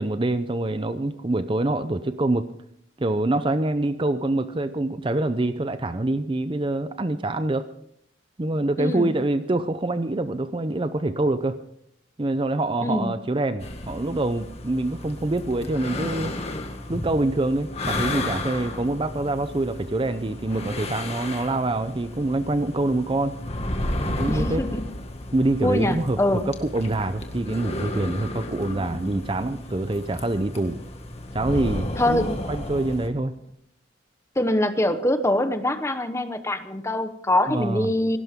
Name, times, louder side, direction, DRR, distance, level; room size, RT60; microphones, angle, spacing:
voice 1, 0.0-2.5 3.0-7.7 8.4-11.6 12.2-16.4 16.9-23.4 24.0-24.7 25.3-30.8 31.3-33.3 37.5-37.9, right 2 dB, 25° right, 12 dB, 0.6 m, -25 dB
voice 2, 8.8-9.1 12.8-13.1 24.3-24.8 25.6-26.5 32.0-32.5 34.4-38.2, left 1 dB, 15° left, 9 dB, 1.0 m, -24 dB
sound 1, 13.6-33.1, left 1 dB, 35° left, 1.8 m, -33 dB
17.5 x 17.0 x 3.6 m, 0.72 s
head